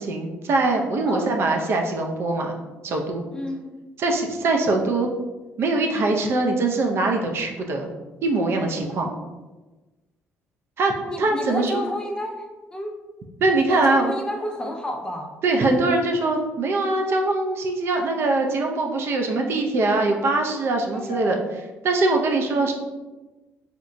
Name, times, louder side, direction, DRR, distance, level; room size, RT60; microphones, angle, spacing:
voice 1, 0.0-2.6 2.8-3.3 4.0-5.1 5.6-7.9 8.2-9.1 10.8-10.9 11.2-11.8 13.4-14.1 15.4-21.4 21.8-22.7, right 2 dB, 55° right, 2 dB, 0.4 m, -22 dB
voice 2, 3.3-3.6 11.0-13.0 13.5-15.3 20.9-21.4, left 1 dB, 15° left, 3 dB, 0.3 m, -30 dB
2.8 x 2.1 x 2.5 m, 1.2 s
cardioid pair, 100°, 5 cm